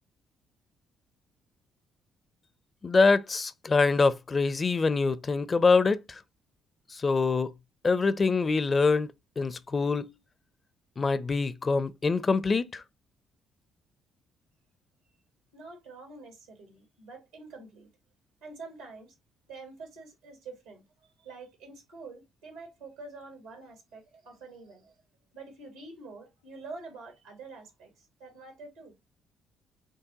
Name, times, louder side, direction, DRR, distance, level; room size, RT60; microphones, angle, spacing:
voice 1, 2.8-6.0 7.0-7.5 7.8-10.0 11.0-12.8, left 4 dB, 35° left, 0.5 m, -24 dB
voice 2, 15.5-17.9 18.4-19.2 19.5-24.9 25.3-28.9, right 3 dB, 90° right, 1.8 m, -47 dB
6.4 x 2.2 x 2.8 m
hypercardioid pair, 55°, 0 cm